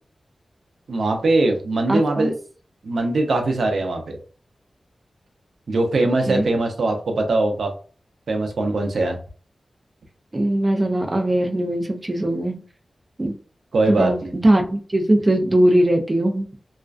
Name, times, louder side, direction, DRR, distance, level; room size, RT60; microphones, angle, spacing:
voice 1, 0.9-2.3 2.8-4.2 5.7-7.7 8.3-9.2 13.7-14.3, right 2 dB, 85° right, 3 dB, 0.5 m, -21 dB
voice 2, 1.9-2.3 6.3-6.4 10.3-12.6 13.2-13.3 13.9-16.5, right 1 dB, 25° right, 3 dB, 0.3 m, -20 dB
2.4 x 2.2 x 2.3 m, 0.40 s
wide cardioid pair, 125°, 0 cm